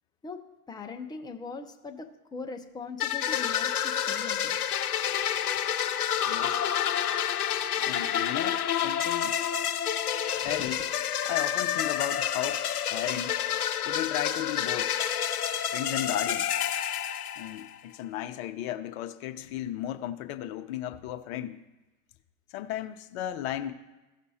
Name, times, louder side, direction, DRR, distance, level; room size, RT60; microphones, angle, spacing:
voice 1, 0.7-4.6, left 4 dB, 10° left, 0.7 m, -40 dB
sound 1, 3.0-17.8, left 9 dB, 85° left, 0.9 m, -29 dB
voice 2, 6.3-6.6 7.8-9.4 10.4-10.9 11.3-12.6 12.9-13.4 13.8-14.9 15.7-16.5 17.4-21.6 22.5-23.7, left 12 dB, 45° left, 0.8 m, -35 dB
15.0 x 6.2 x 2.8 m
hypercardioid pair, 110°, 44 cm